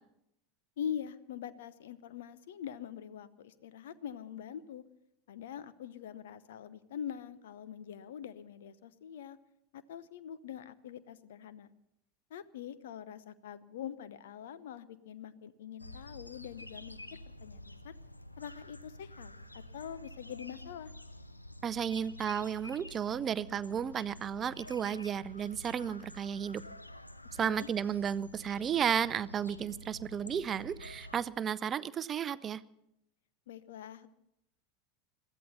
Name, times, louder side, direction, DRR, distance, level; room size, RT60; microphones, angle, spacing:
voice 1, 0.8-4.8 5.3-9.4 9.7-11.7 12.3-17.9 18.4-20.9 27.4-27.7 33.5-34.1, left 9 dB, 65° left, 16 dB, 0.8 m, -44 dB
sound 1, 15.8-31.2, left 1 dB, 90° left, 0.7 m, -49 dB
voice 2, 21.6-26.6 27.4-32.6, right 8 dB, 30° right, 18 dB, 0.6 m, -33 dB
22.5 x 14.5 x 4.2 m, 0.80 s
figure-of-eight pair, 80°, 0 cm